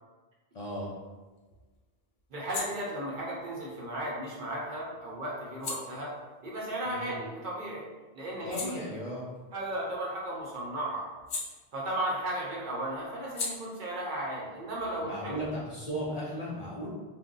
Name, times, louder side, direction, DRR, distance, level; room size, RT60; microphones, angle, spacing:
voice 1, 0.5-0.9 6.9-7.1 8.5-9.2 15.0-16.9, equal, 50° left, -6 dB, 0.5 m, -36 dB
sound 1, 0.7-7.6 8.0-12.2 12.5-15.9, left 3 dB, 75° left, 0.8 m, -44 dB
voice 2, 2.3-6.1 6.4-7.9 8.1-8.6 9.5-11.0 11.7-15.4, right 1 dB, 55° right, -4 dB, 0.7 m, -35 dB
2.5 x 2.1 x 3.7 m, 1.3 s
omnidirectional pair, 1.1 m